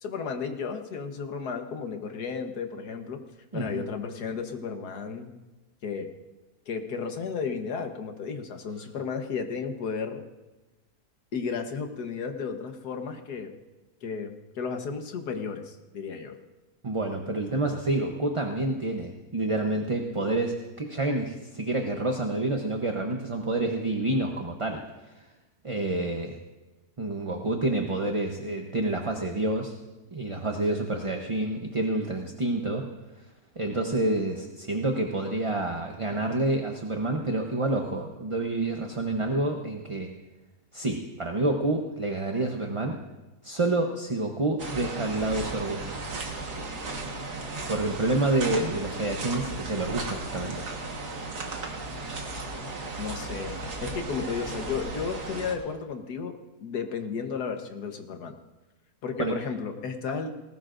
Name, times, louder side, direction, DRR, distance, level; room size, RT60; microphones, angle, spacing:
voice 1, 0.0-3.2 3.5-5.4 5.8-6.1 6.7-10.2 11.3-13.5 14.0-16.4 53.0-53.5 53.8-58.4 59.0-60.3, left 5 dB, 80° left, 5 dB, 1.8 m, -33 dB
voice 2, 3.5-3.8 16.8-24.8 25.6-26.4 27.0-29.7 30.1-32.9 33.6-40.1 40.7-43.0 43.4-45.9 47.7-50.6 59.2-59.3, right 2 dB, 25° right, 2 dB, 0.7 m, -28 dB
sound 1, 44.6-55.5, right 3 dB, 90° right, 2.1 m, -35 dB
19.5 x 18.0 x 2.6 m, 1.1 s
omnidirectional pair, 1.7 m